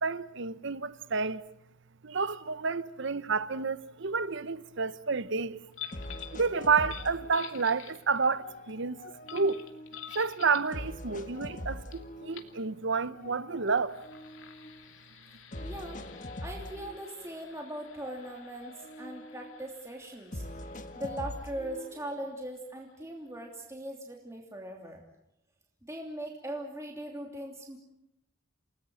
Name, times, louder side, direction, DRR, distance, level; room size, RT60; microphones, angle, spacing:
voice 1, 0.0-1.5 2.0-5.6 6.3-9.0 9.3-9.6 10.1-14.0, right 4 dB, 60° right, 0.9 m, -30 dB
sound 1, 5.2-5.3 5.9-7.9 8.3-10.1 10.7-12.7 13.1-14.9 15.5-17.7 17.9-19.7 20.3-22.3, left 1 dB, 35° left, 1.6 m, -43 dB
sound 2, 5.7-6.4 6.8-8.3 9.3-10.7 11.9-12.0 12.3-12.6 13.6-22.9, left 9 dB, 65° left, 2.7 m, -49 dB
voice 2, 15.6-16.0 16.4-20.4 20.9-25.0 25.8-27.8, right 1 dB, 15° right, 3.0 m, -40 dB
29.5 x 19.5 x 7.8 m
head